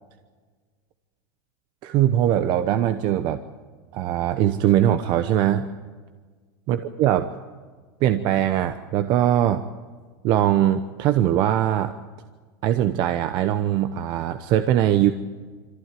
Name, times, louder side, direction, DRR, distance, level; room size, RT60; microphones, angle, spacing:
voice 1, 1.8-3.4 3.9-5.7 6.7-7.3 8.0-9.6 10.2-11.9 12.6-15.1, right 11 dB, 40° right, 9 dB, 1.0 m, -21 dB
25.5 x 15.0 x 9.2 m, 1.5 s
supercardioid pair, 150°, 11 cm